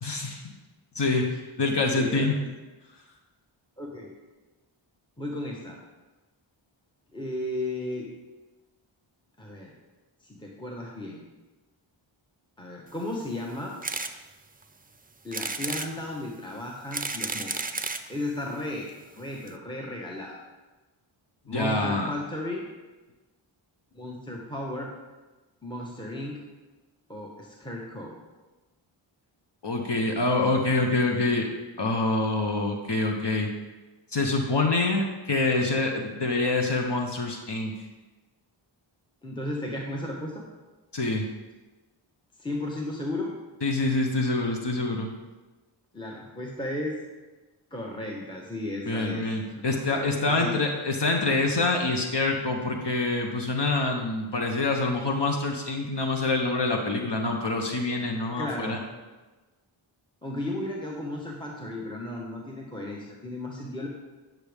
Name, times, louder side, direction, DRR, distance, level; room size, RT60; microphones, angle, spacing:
voice 1, 0.0-0.4 0.9-2.4 21.5-22.1 29.6-31.5 31.8-33.5 34.1-37.7 40.9-41.2 43.6-45.1 48.9-58.8, left 2 dB, 55° left, 2 dB, 1.0 m, -26 dB
voice 2, 1.9-2.5 3.8-4.1 5.2-5.8 7.1-8.1 9.4-9.7 10.2-11.2 12.6-13.7 15.2-17.6 18.1-20.4 21.5-22.7 23.9-24.9 25.6-26.4 27.1-28.1 39.2-40.4 42.4-43.3 45.9-47.0 47.7-50.6 58.4-58.8 60.2-63.9, left 1 dB, 10° left, -2 dB, 1.1 m, -34 dB
sound 1, 13.8-14.1 14.6-14.7 15.3-15.9 16.7-18.1 18.9-19.0 19.2-19.3 19.5-19.6, right 3 dB, 20° right, 0.5 m, -32 dB
9.8 x 6.1 x 3.6 m, 1.2 s
wide cardioid pair, 50°, 49 cm